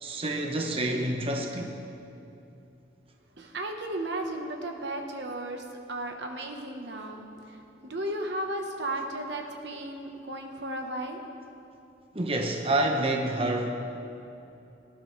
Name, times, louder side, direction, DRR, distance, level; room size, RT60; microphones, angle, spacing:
voice 1, 0.0-1.7 12.1-13.7, right 1 dB, 30° right, 2 dB, 0.9 m, -28 dB
voice 2, 3.4-11.2, right 1 dB, 65° right, 3 dB, 1.3 m, -35 dB
18.5 x 11.5 x 3.4 m, 2.8 s
head